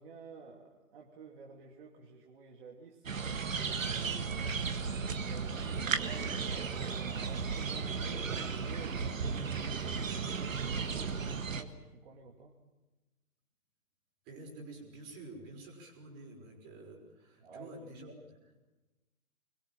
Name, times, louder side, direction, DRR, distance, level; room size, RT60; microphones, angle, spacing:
voice 1, 0.0-3.0 3.4-4.0 4.3-6.8 7.1-12.5 17.4-17.7, right 4 dB, 40° right, 1 dB, 2.7 m, -52 dB
sound 1, 3.1-11.6, right 5 dB, 60° right, 1.8 m, -35 dB
voice 2, 14.3-18.6, right 2 dB, 25° right, 1 dB, 5.6 m, -49 dB
25.0 x 22.0 x 7.5 m, 1.1 s
figure-of-eight pair, 130°, 45 cm